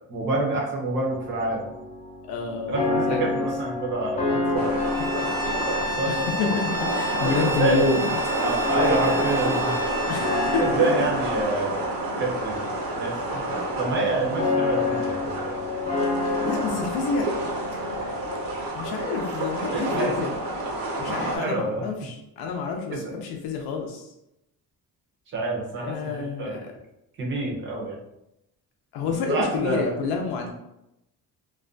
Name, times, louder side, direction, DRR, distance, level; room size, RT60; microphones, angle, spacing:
voice 1, 0.0-1.7 2.7-4.9 5.9-6.6 7.2-7.9 8.4-9.8 10.6-11.9 12.2-13.1 13.8-15.6 19.7-20.1 21.0-22.1 22.9-23.2 25.3-26.6 27.2-28.0 29.0-29.9, right 2 dB, 30° right, -1 dB, 0.5 m, -27 dB
sound 1, 1.0-18.7, left 3 dB, 20° left, 0.4 m, -30 dB
voice 2, 2.3-3.5 5.2-5.4 5.7-8.2 10.1-10.6 16.4-17.3 18.7-20.3 21.0-24.1 25.8-26.7 28.9-30.5, left 4 dB, 90° left, 2 dB, 0.5 m, -29 dB
sound 2, 4.6-21.4, right 2 dB, 70° right, 0.7 m, -29 dB
Bowed string instrument, 4.8-10.7, equal, 85° right, 1.0 m, -32 dB
2.3 x 2.2 x 2.5 m, 0.86 s
cardioid pair, 170°, 37 cm